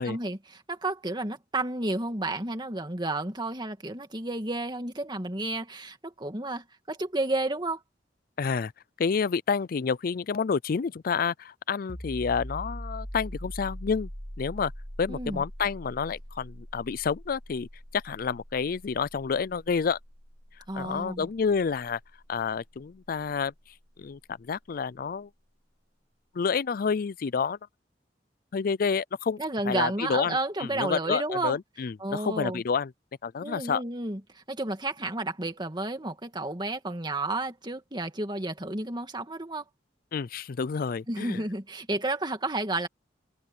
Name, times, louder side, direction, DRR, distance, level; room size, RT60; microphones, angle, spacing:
voice 1, 0.0-7.8 15.1-15.4 20.7-21.3 29.4-31.6 32.0-32.6 33.4-39.6 41.1-42.9, right 2 dB, 25° right, 2.3 m, -31 dB
voice 2, 8.4-8.7 9.0-14.1 14.4-14.7 15.0-17.7 17.9-20.0 20.7-22.0 22.3-23.5 24.0-25.3 26.3-27.6 28.5-29.4 29.7-32.9 33.2-33.8 40.1-41.4, left 5 dB, 55° left, 0.4 m, -29 dB
sound 1, 11.9-23.3, equal, 25° left, 2.7 m, -42 dB
head